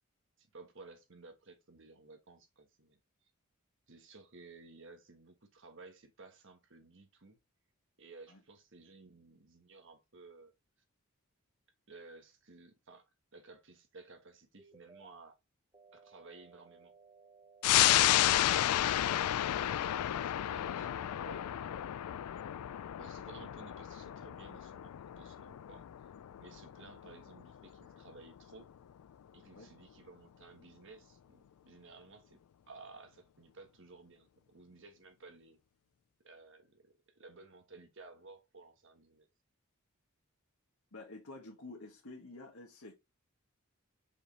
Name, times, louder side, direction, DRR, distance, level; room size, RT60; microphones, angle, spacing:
voice 1, 0.4-3.0 3.9-7.4 8.0-10.5 11.9-15.4 15.9-16.9 19.5-21.5 23.0-25.9 26.4-28.7 29.3-32.4 32.7-35.6 36.2-39.3, right 3 dB, 55° right, 1.4 m, -56 dB
sound 1, 14.6-15.2 15.7-17.7 18.7-19.4 19.8-21.8, right 5 dB, 20° right, 0.7 m, -59 dB
sound 2, 17.6-28.6 29.0-29.1, left 13 dB, 90° left, 0.3 m, -32 dB
voice 2, 40.9-43.0, left 2 dB, 70° left, 1.5 m, -49 dB
5.3 x 4.9 x 4.0 m
head